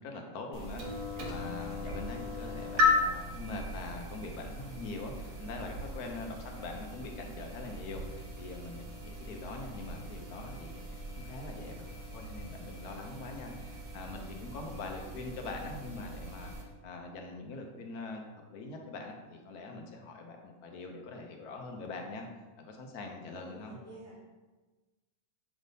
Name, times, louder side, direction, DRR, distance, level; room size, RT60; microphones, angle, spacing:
voice 1, 0.0-11.8 12.1-22.3 22.6-23.8, left 3 dB, 75° left, 2 dB, 1.3 m, -43 dB
sound 1, 0.5-16.6, left 3 dB, 65° right, 1.4 m, -37 dB
voice 2, 6.3-6.7 23.3-24.2, right 2 dB, 10° left, -9 dB, 1.7 m, -50 dB
7.3 x 3.5 x 4.0 m, 1.2 s
omnidirectional pair, 1.6 m